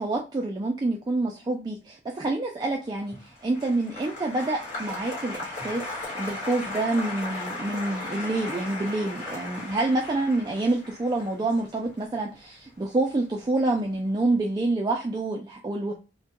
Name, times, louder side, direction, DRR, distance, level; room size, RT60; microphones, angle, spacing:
voice 1, 0.0-5.8 6.1-15.9, right 2 dB, 25° right, -1 dB, 0.3 m, -27 dB
Applause, 3.0-13.4 13.6-14.2, left 2 dB, 40° left, 1.1 m, -37 dB
2.2 x 2.1 x 2.8 m, 0.31 s
head